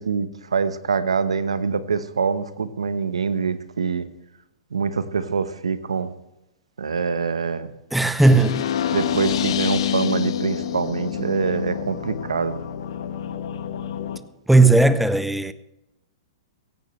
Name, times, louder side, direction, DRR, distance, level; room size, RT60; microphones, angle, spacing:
voice 1, 0.0-4.1 4.7-6.1 6.8-7.7 8.9-12.6, right 5 dB, 90° right, 1.1 m, -25 dB
voice 2, 7.9-8.7 14.5-15.5, right 2 dB, 5° right, 0.7 m, -16 dB
sound 1, 8.2-14.2, left 9 dB, 65° left, 1.3 m, -27 dB
16.5 x 16.0 x 3.2 m
hypercardioid pair, 125°, 3 cm